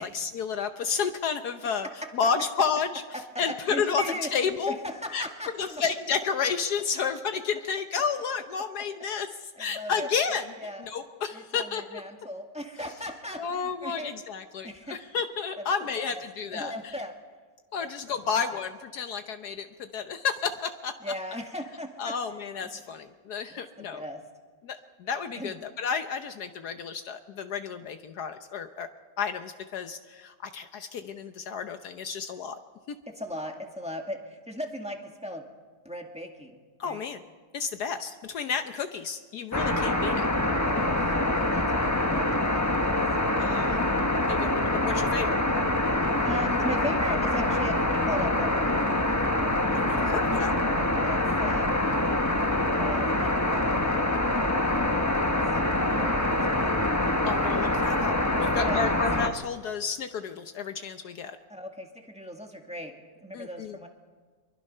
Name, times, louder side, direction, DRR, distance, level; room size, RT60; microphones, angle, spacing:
voice 1, 0.0-4.8 5.1-5.3 5.6-10.5 10.8-12.0 13.4-17.0 17.7-21.1 22.0-24.0 24.6-28.9 29.2-32.6 32.9-33.0 36.8-37.2 37.5-40.2 43.4-43.8 44.3-45.4 49.7-50.5 57.2-61.4 63.3-63.8, left 6 dB, 70° left, 8 dB, 1.4 m, -31 dB
voice 2, 3.3-4.3 4.7-5.8 9.6-10.1 10.6-10.8 11.3-14.1 14.6-15.0 16.0-16.2 16.5-17.1 17.8-17.9 21.0-22.1 23.8-24.2 25.4-25.5 33.1-35.4 35.8-37.0 40.4-43.1 46.0-49.0 51.0-51.8 52.8-55.2 55.7-56.9 58.6-58.8 61.5-62.9 63.2-63.9, left 1 dB, 5° right, 2 dB, 1.8 m, -38 dB
sound 1, 39.5-59.3, left 1 dB, 10° left, 0.9 m, -25 dB
24.5 x 23.0 x 5.5 m, 1.5 s
omnidirectional pair, 1.8 m